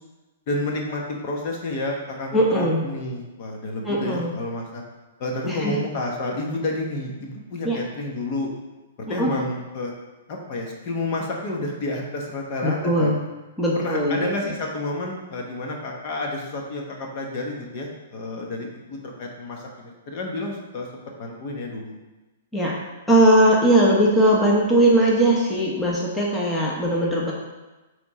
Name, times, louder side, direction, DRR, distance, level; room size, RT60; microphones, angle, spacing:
voice 1, 0.5-4.8 5.2-8.5 9.1-9.9 10.3-13.2 13.7-20.9 21.2-21.9, left 2 dB, 45° left, 0 dB, 1.3 m, -30 dB
voice 2, 2.3-2.9 3.8-4.4 5.5-5.8 7.6-7.8 9.1-9.3 12.6-13.2 13.6-14.2 22.5-22.8 23.1-27.3, right 1 dB, 5° left, -5 dB, 1.1 m, -19 dB
8.5 x 3.5 x 4.3 m, 1.1 s
hypercardioid pair, 150°, 0 cm